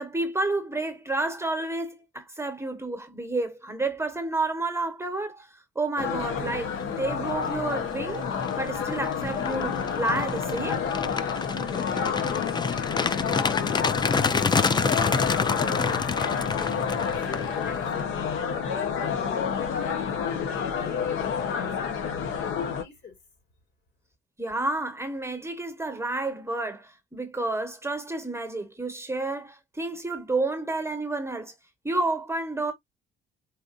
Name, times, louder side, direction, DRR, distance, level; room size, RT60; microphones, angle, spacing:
voice 1, 0.0-5.5 5.7-8.2 8.6-10.8 24.4-31.5 31.8-32.7, right 2 dB, 15° right, 1.1 m, -30 dB
sound 1, 6.0-22.8, left 7 dB, 85° left, 1.0 m, -29 dB
sound 2, 7.2-7.5 7.9-18.0, left 5 dB, 20° left, 0.4 m, -28 dB
voice 2, 12.7-13.5 14.3-17.0 17.3-18.2 18.6-20.1 20.5-23.2, left 5 dB, 60° left, 2.1 m, -41 dB
4.2 x 2.5 x 2.5 m
cardioid pair, 90°, 20 cm